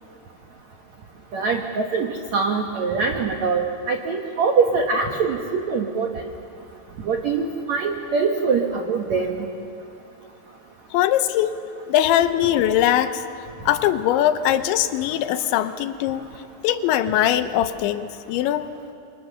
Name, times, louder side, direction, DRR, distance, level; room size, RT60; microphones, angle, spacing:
voice 1, 1.3-6.1 7.0-9.5, right 5 dB, 75° right, 3 dB, 1.6 m, -23 dB
voice 2, 10.9-11.6 11.9-13.2 13.7-16.3 16.6-18.7, left 11 dB, 85° left, 10 dB, 3.2 m, -21 dB
28.0 x 23.5 x 7.0 m, 2.6 s
omnidirectional pair, 5.2 m